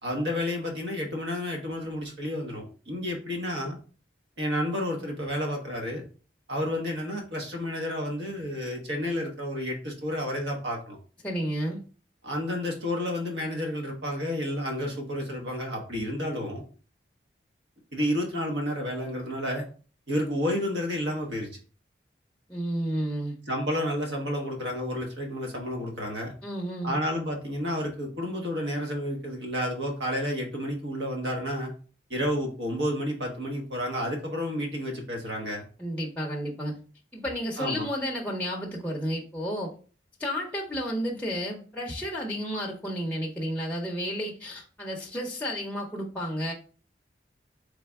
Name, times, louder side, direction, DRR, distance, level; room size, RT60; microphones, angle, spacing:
voice 1, 0.0-3.8 4.4-6.0 6.5-11.0 12.2-16.7 17.9-19.6 20.1-21.5 23.5-26.3 26.8-31.7 32.1-35.6 37.6-37.9, equal, 85° right, 1 dB, 1.2 m, -30 dB
voice 2, 11.2-11.8 22.5-23.4 26.4-26.9 35.8-36.8 37.1-39.7 40.2-46.5, equal, 10° left, -1 dB, 0.6 m, -31 dB
3.8 x 3.3 x 3.4 m, 0.38 s
head